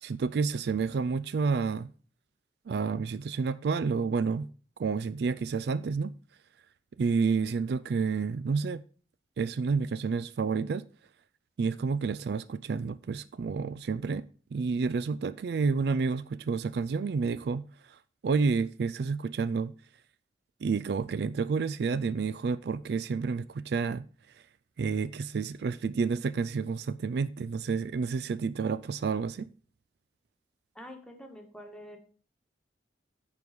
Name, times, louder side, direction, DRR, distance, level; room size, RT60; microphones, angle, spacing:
voice 1, 0.0-1.9 2.7-4.5 4.8-6.1 7.0-8.8 9.4-10.9 11.6-19.7 20.6-24.1 24.8-29.5, right 5 dB, 65° right, 0.3 m, -30 dB
voice 2, 30.7-32.0, equal, 5° left, 1.4 m, -46 dB
9.8 x 4.7 x 5.1 m
head